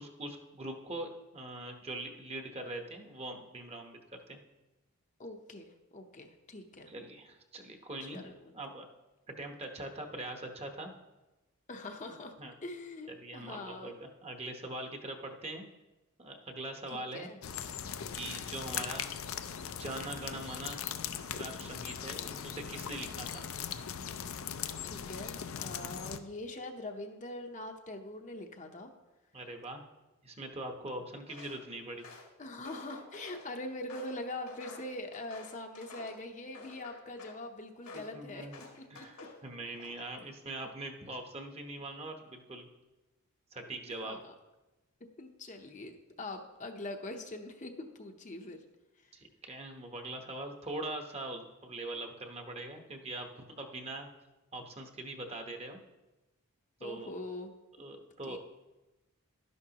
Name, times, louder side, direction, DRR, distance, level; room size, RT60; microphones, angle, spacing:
voice 1, 0.0-4.0 4.3-4.4 6.9-8.2 8.5-8.9 9.4-10.9 12.1-12.6 13.1-15.7 16.2-17.3 18.1-19.1 19.6-20.8 21.3-23.4 29.3-29.8 30.2-32.1 37.9-38.6 38.9-42.7 43.5-44.2 49.1-53.3 53.6-54.1 54.5-55.8 56.8-57.1 57.8-58.4, right 2 dB, 25° right, 4 dB, 1.0 m, -42 dB
voice 2, 5.2-6.9 8.1-8.5 11.7-12.3 12.6-14.0 16.9-17.4 24.8-28.9 32.4-38.5 39.0-39.1 44.0-44.3 45.2-48.6 56.8-57.5 57.8-57.9 58.3-58.4, left 2 dB, 35° left, 4 dB, 0.7 m, -43 dB
sound 1, 17.4-26.2, left 8 dB, 65° left, 0.5 m, -39 dB
Walk footsteps, 31.3-31.6 32.0-33.5 33.9-36.2 36.5-37.4 37.8-38.1 38.5-39.4 39.8-40.2, left 3 dB, 90° left, 2.1 m, -51 dB
12.0 x 10.5 x 2.9 m, 1.0 s
head